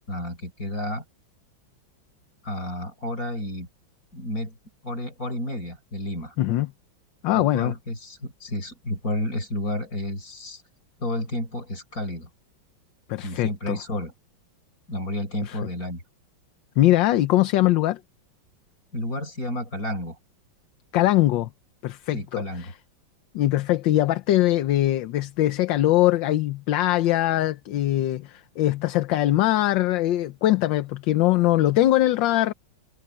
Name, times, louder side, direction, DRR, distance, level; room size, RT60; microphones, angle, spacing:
voice 1, 0.1-1.0 2.4-3.7 4.1-4.6 4.8-6.3 7.3-10.6 11.0-12.3 13.2-14.1 14.9-16.0 18.9-20.2 22.1-22.7, left 1 dB, 45° left, 6.3 m, -31 dB
voice 2, 6.4-6.7 7.2-7.7 13.1-13.8 15.5-15.6 16.8-18.0 20.9-21.5 21.8-22.7 23.3-32.5, left 14 dB, 75° left, 1.4 m, -22 dB
omnidirectional pair, 2.1 m